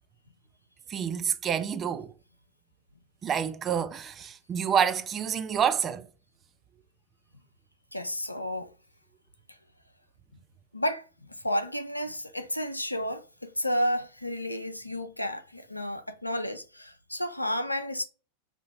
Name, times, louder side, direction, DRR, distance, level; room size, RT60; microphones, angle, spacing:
voice 1, 0.9-2.1 3.2-6.1, right 8 dB, 25° right, 0.4 m, -28 dB
voice 2, 7.9-8.7 10.7-11.0 11.4-18.0, equal, 85° left, 0.4 m, -31 dB
2.8 x 2.4 x 3.4 m
figure-of-eight pair, 90°, 0 cm